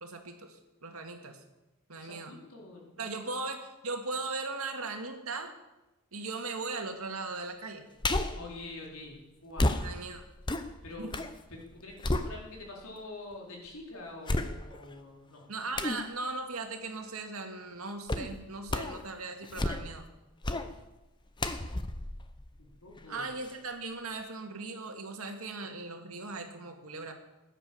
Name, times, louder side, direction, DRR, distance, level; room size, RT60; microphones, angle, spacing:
voice 1, 0.0-1.4 1.9-2.4 3.0-5.5 6.1-7.9 9.8-10.2 11.0-11.1 15.5-20.1 23.1-27.1, right 3 dB, 75° right, 4 dB, 2.1 m, -38 dB
voice 2, 2.0-3.1 8.4-10.1 10.8-11.2 11.5-15.5 20.7-20.8 22.6-23.3, left 2 dB, 75° left, -1 dB, 4.1 m, -46 dB
sound 1, 8.0-8.5 9.6-11.4 11.7-12.8 13.3-13.4 14.3-14.9 15.8-16.1 18.1-18.3 18.7-19.0 19.4-20.0 20.4-20.7 21.4-23.1 23.5-23.6, left 2 dB, 20° left, 0.8 m, -32 dB
16.5 x 9.9 x 7.1 m, 1.0 s
head